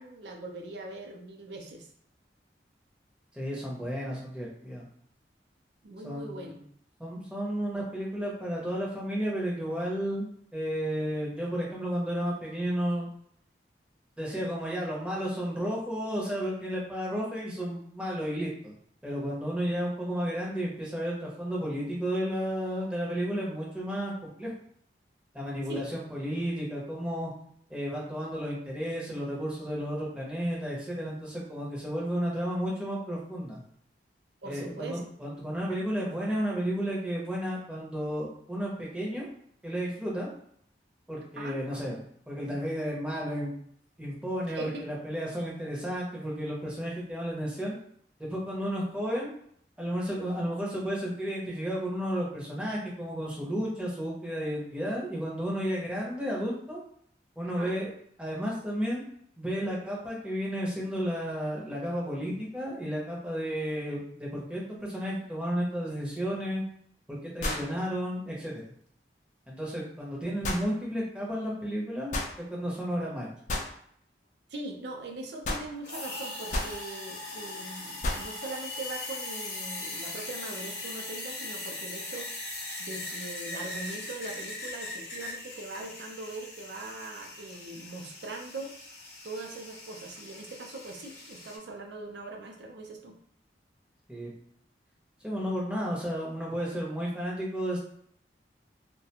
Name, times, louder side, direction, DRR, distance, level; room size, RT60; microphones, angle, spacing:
voice 1, 0.0-1.9 5.8-6.6 25.7-25.8 34.4-35.1 41.4-41.6 44.5-44.9 57.4-57.8 74.5-88.7 89.2-93.2, right 2 dB, 75° right, 2 dB, 0.5 m, -41 dB
voice 2, 3.3-4.8 6.0-6.6 7.0-13.1 14.2-18.7 19.0-24.5 25.3-27.3 27.7-33.6 34.4-39.3 39.6-40.3 41.1-42.0 42.3-43.5 44.0-47.7 48.2-49.3 49.8-56.8 57.4-57.9 58.2-59.0 59.4-66.6 67.1-68.6 69.5-73.3 94.1-94.3 95.2-97.8, equal, 5° right, -4 dB, 0.6 m, -32 dB
sound 1, 66.2-66.3 67.4-67.8 70.4-70.7 72.1-72.4 73.5-73.7 75.4-75.7 76.5-76.8 78.0-78.3, left 1 dB, 45° left, 0.4 m, -31 dB
sound 2, 75.8-91.6, left 2 dB, 60° left, 0.8 m, -40 dB
2.4 x 2.1 x 2.8 m, 0.66 s
head